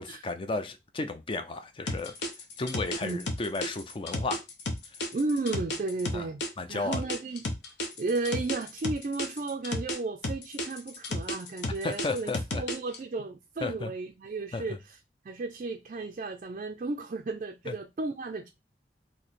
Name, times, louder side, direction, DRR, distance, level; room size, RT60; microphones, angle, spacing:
voice 1, 0.0-2.1 2.6-4.4 6.1-6.3 6.6-7.0 11.8-12.6 13.6-13.9 14.5-14.6 17.7-17.8, left 3 dB, 30° left, 0.4 m, -33 dB
sound 1, 1.9-6.5 6.9-10.0 10.2-13.0, left 1 dB, 75° left, 0.8 m, -32 dB
voice 2, 5.1-6.4 6.7-7.4 8.0-15.0 15.3-18.5, right 3 dB, 45° right, 0.4 m, -34 dB
3.1 x 2.7 x 4.1 m
head